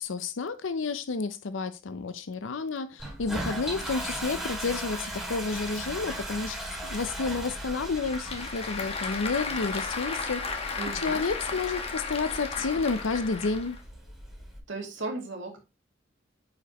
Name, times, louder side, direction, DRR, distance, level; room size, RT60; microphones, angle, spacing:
voice 1, 0.0-10.4 11.0-13.8, left 4 dB, 75° left, 0.6 m, -30 dB
Toilet flush, 3.0-14.6, right 1 dB, 5° right, 3.0 m, -38 dB
Applause / Crowd, 7.6-13.8, left 4 dB, 30° left, 1.3 m, -34 dB
voice 2, 10.8-11.6 14.7-15.6, right 2 dB, 70° right, 2.5 m, -36 dB
9.2 x 5.1 x 2.9 m
head